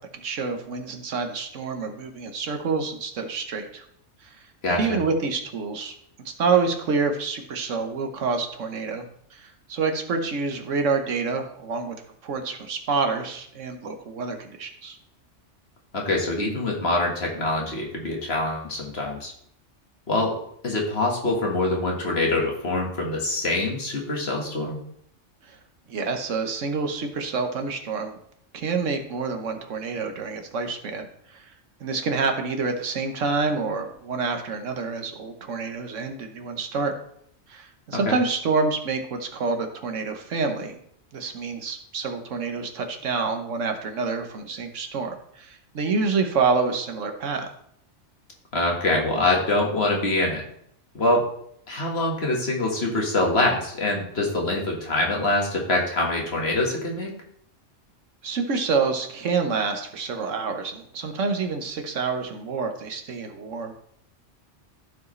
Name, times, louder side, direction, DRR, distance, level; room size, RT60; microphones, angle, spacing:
voice 1, 0.1-3.8 4.7-5.9 6.4-9.1 9.3-12.0 12.2-15.0 25.5-25.6 25.9-28.2 28.5-31.4 31.8-36.9 37.5-40.8 41.1-47.5 58.2-63.7, right 4 dB, 80° right, 5 dB, 1.4 m, -27 dB
voice 2, 4.6-5.0 15.9-19.3 20.1-20.4 20.6-24.8 38.1-38.2 48.5-50.4 51.0-51.3 51.7-57.1, left 2 dB, 55° left, -1 dB, 1.8 m, -24 dB
14.5 x 4.8 x 3.2 m, 0.69 s
omnidirectional pair, 1.3 m